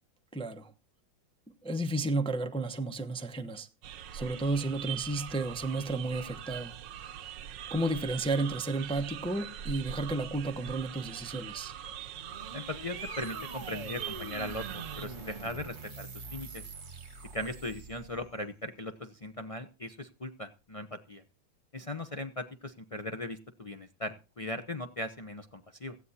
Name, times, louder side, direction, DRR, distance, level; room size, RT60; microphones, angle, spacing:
voice 1, 0.3-0.7 1.5-3.7 4.1-6.7 7.7-11.7, right 2 dB, 5° left, 0.5 m, -32 dB
sound 1, 3.8-15.1, right 9 dB, 70° right, 1.4 m, -42 dB
sound 2, 12.0-18.3, right 3 dB, 40° right, 2.2 m, -44 dB
voice 2, 12.5-16.6 17.3-21.2 21.7-26.0, left 1 dB, 65° left, 0.3 m, -39 dB
17.5 x 15.0 x 2.8 m
omnidirectional pair, 2.1 m